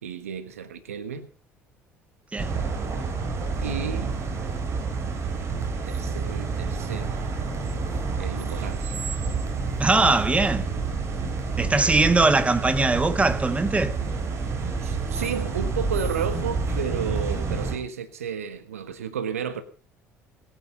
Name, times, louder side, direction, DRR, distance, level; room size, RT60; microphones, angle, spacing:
voice 1, 0.0-1.3 3.6-4.2 5.8-7.1 8.2-8.9 11.7-11.9 14.8-19.6, right 7 dB, 80° right, 1.3 m, -32 dB
sound 1, 2.4-17.8, right 4 dB, 40° right, 4.3 m, -29 dB
voice 2, 9.8-10.7 11.6-14.0, right 3 dB, 15° right, 1.5 m, -21 dB
21.5 x 8.9 x 5.3 m
figure-of-eight pair, 55°, 8 cm